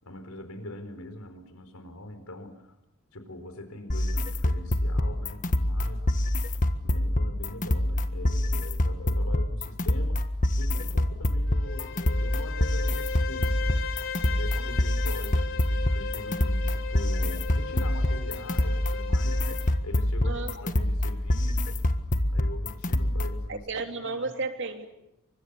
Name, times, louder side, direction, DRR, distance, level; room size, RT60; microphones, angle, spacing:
voice 1, 0.0-2.7 3.1-6.0 6.8-10.3 10.6-13.9 14.2-21.8 22.3-23.7 24.0-24.3, left 1 dB, 80° left, 8 dB, 4.6 m, -42 dB
sound 1, 3.9-23.5, left 1 dB, 35° left, 1.6 m, -26 dB
Bowed string instrument, 11.5-19.8, left 5 dB, 60° left, 2.4 m, -37 dB
voice 2, 20.2-20.8 23.5-25.0, right 3 dB, 55° right, 5 dB, 3.1 m, -34 dB
29.5 x 25.5 x 7.0 m, 0.82 s
head